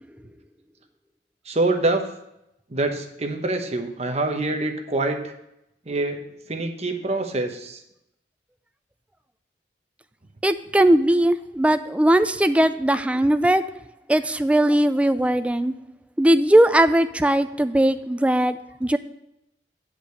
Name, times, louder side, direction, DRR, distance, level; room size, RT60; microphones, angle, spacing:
voice 1, 1.5-2.1 2.7-5.3 5.9-6.2 6.5-7.8, right 2 dB, 40° right, 4 dB, 1.0 m, -25 dB
voice 2, 10.4-13.6 14.1-15.7 16.2-19.0, right 1 dB, 5° right, 11 dB, 0.4 m, -19 dB
8.5 x 5.1 x 6.4 m, 0.82 s
head